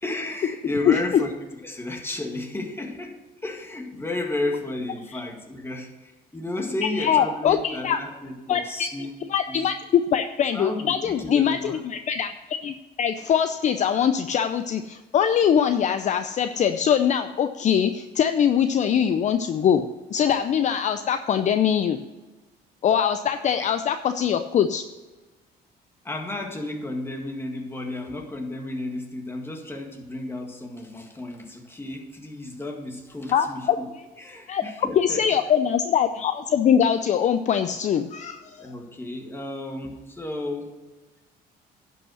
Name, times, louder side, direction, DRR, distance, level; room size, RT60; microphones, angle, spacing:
voice 1, 0.0-1.3 1.6-9.1 9.5-9.7 10.5-11.8 23.6-23.7 26.0-33.9 34.2-35.2 38.6-40.7, left 2 dB, 15° left, 2 dB, 1.8 m, -33 dB
voice 2, 7.0-8.0 8.5-8.9 9.3-19.9 20.1-22.0 22.8-24.8 33.3-33.8 34.5-34.6 35.0-38.7, left 8 dB, 45° left, 9 dB, 0.5 m, -22 dB
11.0 x 5.5 x 6.3 m, 1.2 s
cardioid pair, 110°, 17 cm